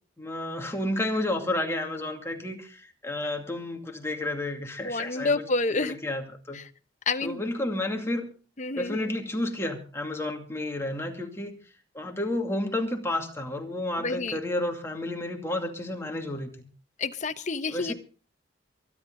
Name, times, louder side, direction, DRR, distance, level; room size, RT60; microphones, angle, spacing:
voice 1, 0.2-5.3 5.8-6.6 7.2-8.3 8.8-11.6 11.9-16.7 17.7-17.9, left 1 dB, 15° left, 2 dB, 2.4 m, -31 dB
voice 2, 4.8-6.0 6.5-6.6 7.1-7.4 8.6-9.1 14.0-14.4 17.0-17.9, left 3 dB, 40° left, 10 dB, 1.0 m, -29 dB
23.5 x 11.0 x 3.8 m, 0.38 s
head